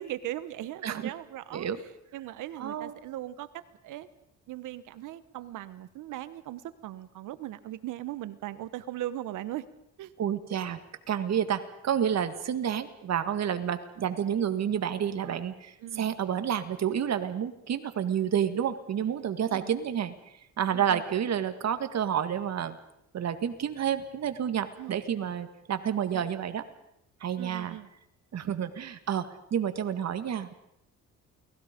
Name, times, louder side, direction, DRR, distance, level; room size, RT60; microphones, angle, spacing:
voice 1, 0.0-3.5 3.8-4.1 4.5-9.7 10.0-10.1 15.8-16.1 19.5-19.7 20.7-21.0 24.8-25.0 26.1-26.3 27.4-27.9, right 14 dB, 85° right, 14 dB, 1.3 m, -39 dB
voice 2, 2.6-2.9 10.2-10.8 11.1-20.1 20.6-22.8 23.1-26.6 27.2-27.8 28.3-30.5, right 9 dB, 60° right, 10 dB, 2.0 m, -29 dB
29.0 x 19.5 x 5.3 m, 0.82 s
cardioid pair, 90°, 30 cm